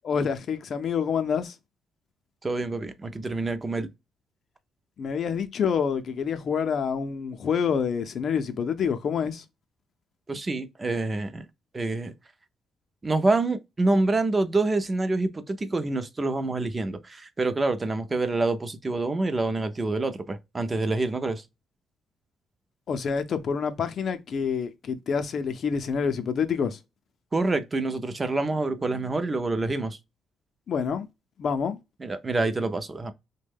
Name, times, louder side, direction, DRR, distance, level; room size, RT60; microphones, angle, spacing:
voice 1, 0.0-1.6 5.0-9.4 22.9-26.8 30.7-31.1 31.4-31.8, left 6 dB, 55° left, 0.5 m, -27 dB
voice 2, 2.4-3.9 10.3-11.4 11.7-12.1 13.0-21.4 27.3-30.0 32.0-33.1, right 2 dB, 25° right, 0.5 m, -27 dB
3.1 x 2.2 x 3.3 m
cardioid pair, 90°, 0 cm